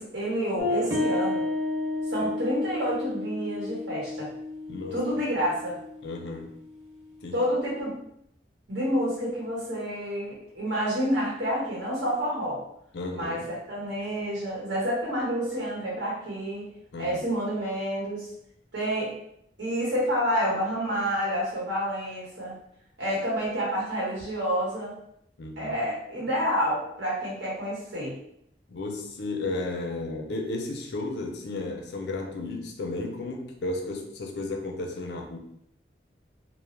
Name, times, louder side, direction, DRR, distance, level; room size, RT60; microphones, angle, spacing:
voice 1, 0.0-1.5 2.1-4.3 4.9-5.8 7.3-7.9 8.7-12.6 13.1-13.4 13.7-16.7 17.0-18.3 18.7-19.1 19.6-22.5 23.0-24.9 25.6-28.2, equal, 80° right, -5 dB, 1.2 m, -29 dB
sound 1, 0.6-7.5, left 2 dB, 65° right, 0.8 m, -32 dB
voice 2, 4.7-5.0 6.0-6.5 7.2-7.4 12.9-13.5 16.9-17.2 25.4-25.7 28.7-35.4, left 2 dB, 70° left, 2 dB, 0.4 m, -33 dB
2.2 x 2.0 x 3.1 m, 0.72 s
head